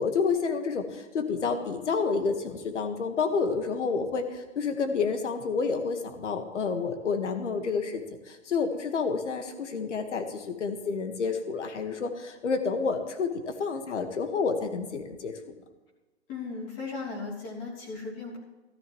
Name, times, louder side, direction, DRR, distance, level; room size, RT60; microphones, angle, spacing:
voice 1, 0.0-15.3, left 5 dB, 85° left, 6 dB, 1.7 m, -29 dB
voice 2, 16.3-18.4, left 4 dB, 25° left, -3 dB, 3.3 m, -36 dB
14.5 x 13.5 x 3.1 m, 1.2 s
hypercardioid pair, 155°, 35 cm